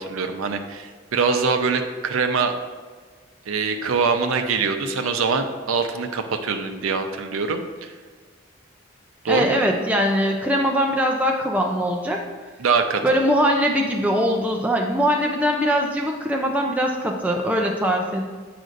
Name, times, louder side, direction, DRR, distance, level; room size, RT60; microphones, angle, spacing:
voice 1, 0.0-2.5 3.5-7.9 9.2-9.6 12.6-13.2, right 4 dB, 75° right, 6 dB, 0.5 m, -23 dB
voice 2, 9.3-12.2 13.0-18.3, equal, 5° right, 1 dB, 0.3 m, -21 dB
7.7 x 5.0 x 2.5 m, 1.5 s
head